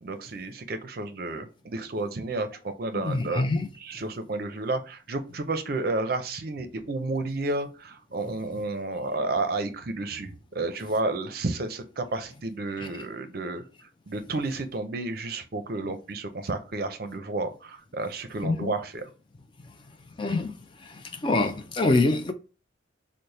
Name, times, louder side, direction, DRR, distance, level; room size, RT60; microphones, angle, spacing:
voice 1, 0.0-2.5 2.8-3.5 3.8-13.6 14.1-19.1, right 2 dB, 50° right, 0.5 m, -31 dB
voice 2, 2.9-3.7 18.4-18.7 20.2-20.5 21.2-22.3, left 2 dB, 25° left, 0.3 m, -24 dB
4.0 x 2.1 x 3.2 m
head